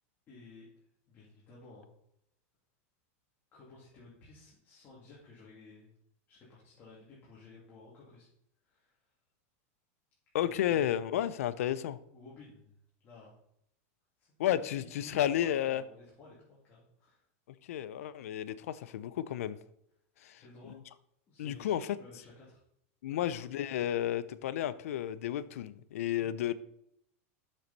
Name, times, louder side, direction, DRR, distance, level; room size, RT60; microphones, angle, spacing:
voice 1, 0.3-0.7 1.1-1.9 3.5-5.9 6.3-8.3 8.6-9.0 10.4-10.9 12.1-12.8 13.0-13.4 14.2-17.2 20.3-20.8 21.3-22.6 23.1-23.3 26.2-26.3, left 3 dB, 25° left, -6 dB, 2.4 m, -54 dB
voice 2, 10.3-12.0 14.4-15.8 17.6-19.6 20.2-20.8 21.4-22.0 23.0-26.5, left 11 dB, 85° left, 16 dB, 0.5 m, -32 dB
7.4 x 6.7 x 4.1 m, 0.74 s
supercardioid pair, 150°, 8 cm